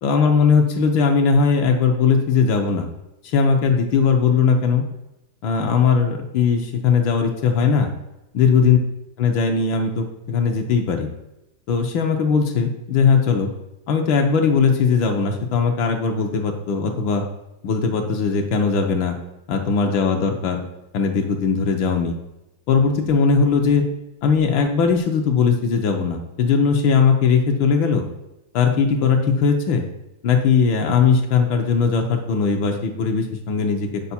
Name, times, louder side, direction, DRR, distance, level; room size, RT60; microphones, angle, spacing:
voice 1, 0.0-2.9 3.2-4.8 5.4-7.9 8.3-8.8 9.2-11.1 11.7-13.5 13.9-17.2 17.6-19.2 19.5-20.6 20.9-22.2 22.7-23.8 24.2-28.0 28.5-29.8 30.2-34.0, left 5 dB, 75° left, 3 dB, 1.5 m, -19 dB
8.2 x 4.5 x 4.2 m, 0.91 s
omnidirectional pair, 2.2 m